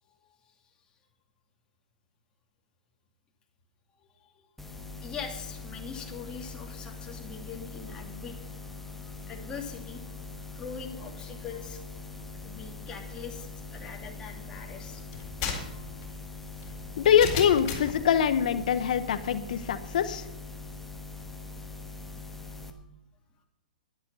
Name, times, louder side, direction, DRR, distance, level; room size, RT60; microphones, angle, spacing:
sound 1, 4.6-22.7, left 3 dB, 5° left, 1.3 m, -42 dB
voice 1, 4.7-10.2 10.5-11.8 12.4-15.0 15.7-15.9 22.6-22.8, left 6 dB, 20° left, 0 dB, 2.8 m, -42 dB
sound 2, 15.1-18.0, left 7 dB, 40° left, 3.9 m, -35 dB
voice 2, 17.0-20.2, left 8 dB, 60° left, 12 dB, 1.1 m, -24 dB
11.5 x 11.5 x 5.6 m, 0.89 s
hypercardioid pair, 125°, 5 cm